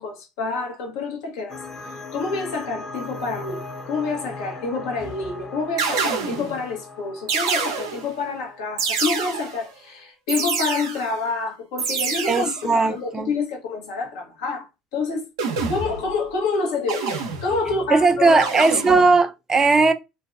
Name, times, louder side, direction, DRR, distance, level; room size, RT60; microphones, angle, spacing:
voice 1, 0.0-1.6 2.1-14.7 14.9-15.3 15.7-18.5, left 4 dB, 75° left, 0.9 m, -27 dB
sound 1, 1.5-9.8, left 3 dB, 20° left, 0.7 m, -39 dB
sound 2, 5.0-5.3 5.8-6.6 7.3-8.2 8.8-9.7 10.3-11.2 11.8-12.6 15.4-16.1 16.9-17.7 18.4-19.2, right 5 dB, 85° right, 0.5 m, -27 dB
voice 2, 12.3-13.3 17.9-19.9, right 3 dB, 25° right, 0.4 m, -18 dB
2.6 x 2.2 x 2.4 m
hypercardioid pair, 65°, 2 cm